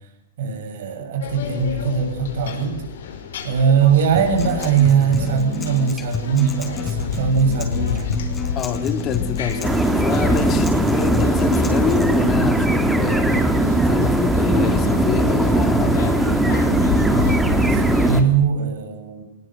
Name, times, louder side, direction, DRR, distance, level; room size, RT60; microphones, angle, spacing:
voice 1, 0.4-2.8 3.4-8.1 17.1-19.2, right 6 dB, 65° right, 6 dB, 7.5 m, -20 dB
sound 1, 1.2-18.2, left 7 dB, 70° left, 5.3 m, -30 dB
Acoustic guitar, 4.2-12.1, left 3 dB, 15° left, 5.1 m, -30 dB
voice 2, 8.6-13.4 13.8-16.4, left 8 dB, 30° left, 8 dB, 2.8 m, -26 dB
sound 2, 9.6-18.2, right 1 dB, 5° right, 2.3 m, -19 dB
21.5 x 20.0 x 7.9 m, 0.88 s
hypercardioid pair, 120°, 0 cm